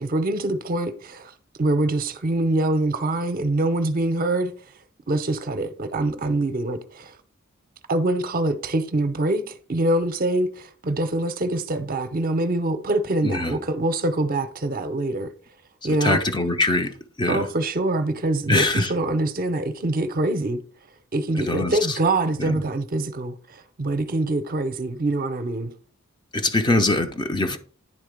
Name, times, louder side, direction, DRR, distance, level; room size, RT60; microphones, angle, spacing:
voice 1, 0.0-1.3 1.6-4.5 5.1-7.2 7.9-15.3 15.8-16.2 17.3-20.6 21.1-25.7, right 2 dB, 40° right, 0.7 m, -24 dB
voice 2, 13.2-13.6 16.0-16.9 17.2-17.5 18.5-18.9 21.4-21.7 22.4-22.6 26.3-27.6, left 2 dB, 20° left, 0.6 m, -22 dB
9.9 x 3.8 x 5.1 m
head